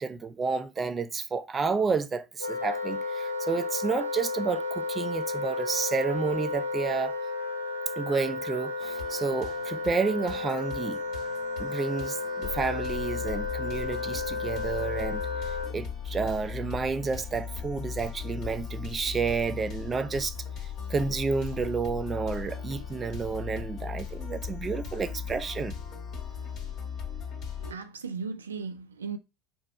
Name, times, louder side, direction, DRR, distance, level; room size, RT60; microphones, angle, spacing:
voice 1, 0.0-7.1 8.0-11.0 11.6-20.3 20.6-25.7, right 4 dB, 25° right, 0.5 m, -30 dB
Wind instrument woodwind instrument, 2.4-15.8, left 3 dB, 90° left, 0.7 m, -33 dB
sound 1, 8.8-27.7, left 7 dB, 45° left, 2.0 m, -38 dB
voice 2, 27.6-29.2, right 5 dB, 85° right, 0.4 m, -36 dB
4.2 x 2.2 x 4.0 m
hypercardioid pair, 75°, 0 cm